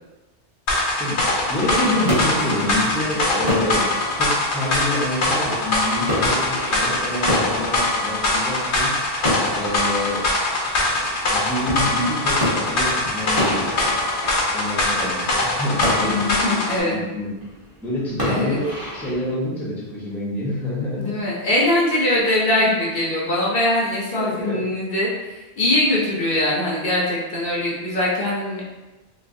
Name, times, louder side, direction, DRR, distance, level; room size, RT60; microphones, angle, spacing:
sound 1, 0.7-16.8, left 2 dB, 80° left, 1.1 m, -22 dB
sound 2, 1.1-19.3, left 1 dB, 20° right, 1.0 m, -30 dB
voice 1, 1.5-3.8 4.2-8.9 9.5-10.3 11.3-13.9 14.5-16.3 16.8-17.3 17.8-21.3 24.1-24.6, left 1 dB, ahead, -6 dB, 0.6 m, -27 dB
voice 2, 16.0-17.0 18.3-18.6 21.0-28.6, left 1 dB, 60° left, -4 dB, 0.9 m, -22 dB
3.0 x 3.0 x 2.6 m, 1.1 s
omnidirectional pair, 1.1 m